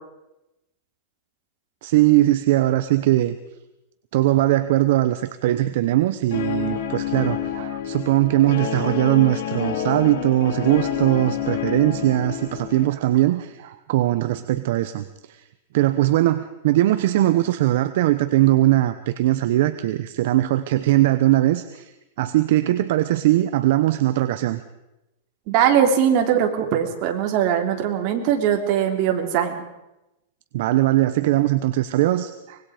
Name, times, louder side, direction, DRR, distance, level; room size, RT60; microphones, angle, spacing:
voice 1, 1.8-3.4 4.1-15.4 15.7-21.9 22.2-24.6 30.5-32.6, right 15 dB, 60° right, 11 dB, 1.0 m, -20 dB
Guitar, 6.3-12.8, left 9 dB, 65° left, 2.8 m, -28 dB
voice 2, 25.5-29.5, right 9 dB, 40° right, 3 dB, 3.3 m, -20 dB
24.5 x 21.0 x 5.1 m, 0.93 s
supercardioid pair, 155°, 0 cm